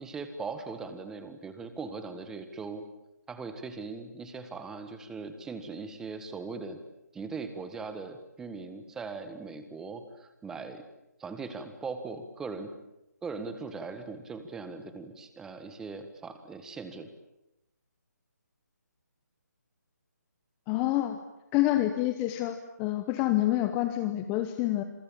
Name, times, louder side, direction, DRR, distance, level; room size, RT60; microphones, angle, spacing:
voice 1, 0.0-2.8 3.3-6.8 7.1-10.8 11.2-12.7 13.2-17.1, right 4 dB, 5° right, 9 dB, 1.6 m, -40 dB
voice 2, 20.7-21.2 21.5-24.8, left 15 dB, 15° left, 9 dB, 1.0 m, -27 dB
27.0 x 23.5 x 8.8 m, 0.88 s
figure-of-eight pair, 160°, 10 cm